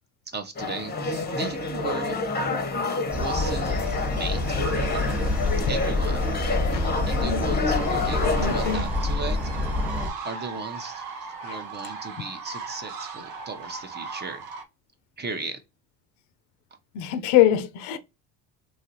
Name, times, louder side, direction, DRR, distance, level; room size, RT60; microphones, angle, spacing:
voice 1, 0.3-2.2 3.1-5.3 5.6-6.4 7.1-9.4 10.2-11.1 11.4-14.5 15.2-15.6, right 3 dB, 20° right, 0.6 m, -36 dB
sound 1, 0.5-8.8, left 3 dB, 20° left, 0.7 m, -28 dB
sound 2, 3.1-10.1, left 2 dB, 5° right, 1.1 m, -27 dB
voice 2, 7.2-7.6 8.4-8.9 11.4-11.5 16.9-18.0, left 11 dB, 70° left, 0.6 m, -24 dB
sound 3, 7.6-14.6, right 5 dB, 85° right, 0.8 m, -37 dB
2.9 x 2.4 x 2.7 m
hypercardioid pair, 70°, 46 cm